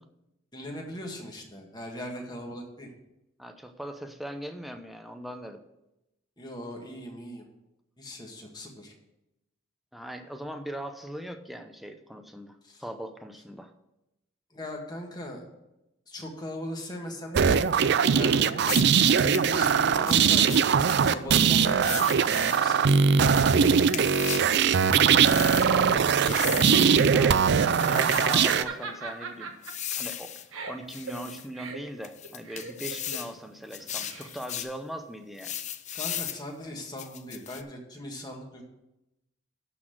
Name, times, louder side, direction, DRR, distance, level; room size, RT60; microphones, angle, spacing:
voice 1, 0.5-2.9 6.4-7.4 8.0-8.9 12.6-12.8 14.5-15.4 16.1-17.7 18.1-18.5 19.2-20.5 21.0-22.1 22.4-23.2 35.9-38.6, left 1 dB, 20° left, 0 dB, 1.7 m, -39 dB
voice 2, 3.4-5.6 9.9-13.7 24.3-24.8 25.7-27.6 27.9-29.5 30.0-35.6, equal, ahead, 6 dB, 0.7 m, -39 dB
sound 1, 17.3-28.6, right 6 dB, 55° right, 0.4 m, -21 dB
sound 2, 18.6-19.5 20.1-21.0 21.8-22.6 23.3-24.5 25.2-25.7 26.2-27.0 27.7-28.6 29.6-30.5 30.9-31.5 32.0-33.3 33.7-34.7 35.4-36.4 37.0-37.6, left 10 dB, 35° left, 0.5 m, -36 dB
Laughter, 25.3-34.6, right 4 dB, 85° right, 1.3 m, -40 dB
12.0 x 4.2 x 7.7 m, 0.92 s
head